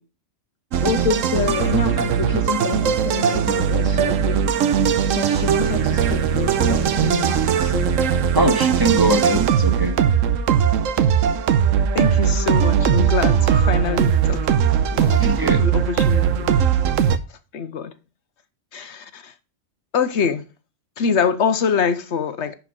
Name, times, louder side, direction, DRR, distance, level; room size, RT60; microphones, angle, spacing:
sound 1, 0.7-17.2, right 8 dB, 85° right, 1.2 m, -19 dB
voice 1, 0.8-4.5 5.1-8.0 8.4-8.5, left 5 dB, 85° left, 1.3 m, -27 dB
voice 2, 8.3-10.0 15.2-15.6, right 1 dB, 15° right, 1.8 m, -21 dB
voice 3, 11.9-14.6 14.9-15.2 15.6-16.5 17.5-17.9 18.7-19.3 19.9-20.4 21.0-22.5, left 6 dB, 65° left, 1.1 m, -24 dB
11.0 x 4.6 x 5.0 m
omnidirectional pair, 1.3 m